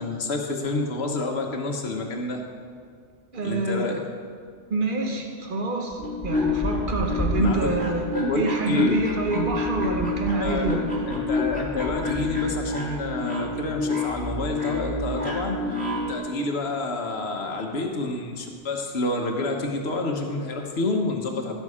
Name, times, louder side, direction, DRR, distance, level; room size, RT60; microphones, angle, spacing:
voice 1, 0.0-2.4 3.4-4.0 7.4-7.7 8.1-8.9 10.4-10.6 11.3-15.6 16.1-21.5, left 2 dB, 65° left, 2 dB, 1.4 m, -28 dB
voice 2, 3.3-3.8 4.7-8.1 8.3-11.0, right 3 dB, 45° right, 2 dB, 1.4 m, -26 dB
sound 1, 5.9-16.2, left 3 dB, 5° left, 2.1 m, -28 dB
15.0 x 6.8 x 4.9 m, 2.1 s
omnidirectional pair, 1.2 m